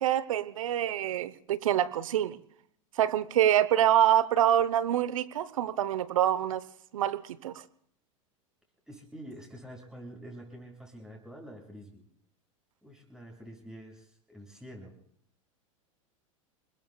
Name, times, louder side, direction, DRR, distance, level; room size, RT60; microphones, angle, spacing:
voice 1, 0.0-2.4 3.0-6.6 6.9-7.5, right 11 dB, 75° right, 17 dB, 1.0 m, -26 dB
voice 2, 8.9-12.0 12.8-14.9, equal, 5° right, 0 dB, 7.5 m, -47 dB
28.5 x 21.5 x 2.4 m, 0.64 s
hypercardioid pair, 95°, 17 cm